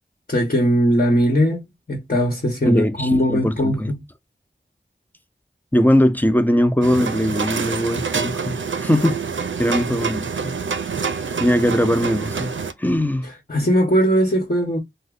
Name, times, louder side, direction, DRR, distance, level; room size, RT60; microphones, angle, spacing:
voice 1, 0.3-4.0 13.5-14.8, equal, 45° left, 1.1 m, -19 dB
voice 2, 2.7-3.9 5.7-9.2 9.6-10.5 11.4-12.5 12.8-13.3, equal, 10° left, 0.5 m, -20 dB
sound 1, 6.8-12.7, right 5 dB, 80° right, 0.5 m, -26 dB
3.0 x 2.1 x 3.6 m
wide cardioid pair, 45°, 20 cm